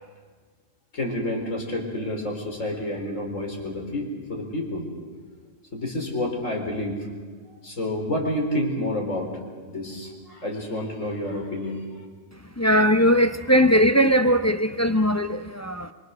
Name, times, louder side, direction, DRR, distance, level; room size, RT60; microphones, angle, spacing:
voice 1, 0.9-4.9 5.7-7.0 7.6-9.3 9.7-11.8, left 1 dB, 80° left, 4.7 m, -29 dB
voice 2, 12.6-15.9, equal, 20° left, 0.5 m, -19 dB
25.5 x 25.0 x 6.7 m
omnidirectional pair, 1.3 m